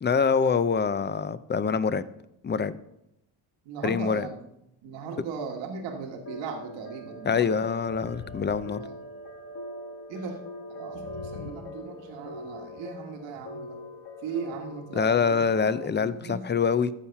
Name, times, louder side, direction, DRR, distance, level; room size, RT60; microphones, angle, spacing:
voice 1, 0.0-2.0 2.4-2.8 3.8-4.3 7.2-8.8 14.9-16.9, left 6 dB, 25° left, 15 dB, 0.6 m, -25 dB
voice 2, 3.6-4.3 4.8-7.5 8.8-8.9 10.1-10.4 10.7-13.8 14.2-16.4, right 5 dB, 90° right, 2 dB, 1.6 m, -38 dB
sound 1, 6.1-6.2 7.9-9.5 10.9-12.3, left 10 dB, 90° left, 0.8 m, -45 dB
sound 2, 6.3-15.9, left 1 dB, 60° left, 1.9 m, -42 dB
14.0 x 5.7 x 5.8 m, 0.83 s
cardioid pair, 95°, 43 cm